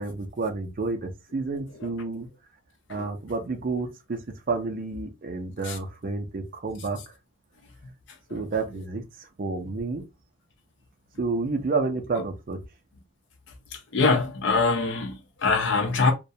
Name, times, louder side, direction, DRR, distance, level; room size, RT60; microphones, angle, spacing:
voice 1, 0.0-2.3 2.9-7.0 8.3-10.0 11.2-12.6, right 3 dB, 45° right, 0.5 m, -30 dB
voice 2, 13.9-16.1, left 4 dB, 60° left, 0.5 m, -23 dB
2.3 x 2.1 x 2.6 m
head